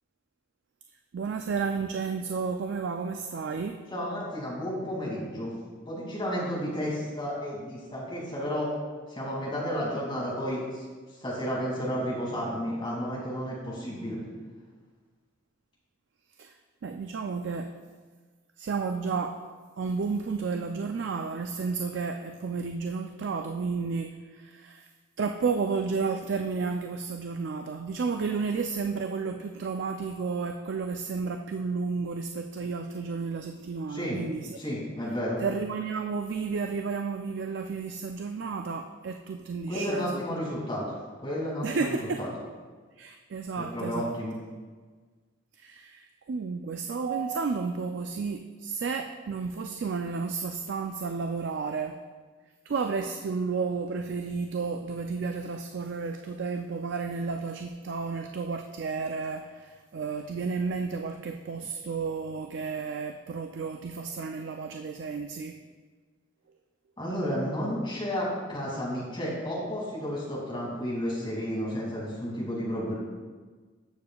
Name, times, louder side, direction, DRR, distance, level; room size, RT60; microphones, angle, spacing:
voice 1, 1.1-3.8 16.4-16.5 16.8-17.7 18.6-19.4 19.8-24.9 25.2-34.6 35.4-40.2 41.6-42.2 43.0-44.2 45.6-52.0 52.7-65.6, right 5 dB, 60° right, 5 dB, 0.4 m, -32 dB
voice 2, 3.9-5.5 5.9-8.7 9.1-10.8 11.2-14.2 33.9-34.2 34.6-35.4 39.7-42.3 43.6-44.4 67.0-72.9, equal, 25° left, -5 dB, 2.4 m, -32 dB
13.5 x 6.8 x 2.3 m, 1.4 s
head